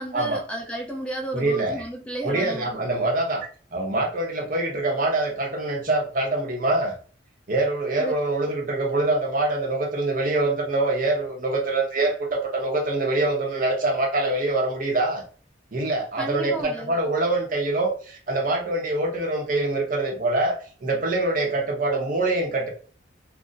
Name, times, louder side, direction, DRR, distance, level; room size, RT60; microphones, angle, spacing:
voice 1, 0.0-3.1 8.0-8.1 16.2-17.0, right 1 dB, 5° left, 0.5 m, -33 dB
voice 2, 1.3-1.8 2.2-6.9 7.5-15.2 15.7-22.7, right 2 dB, 45° right, 0.7 m, -24 dB
2.5 x 2.1 x 3.8 m
head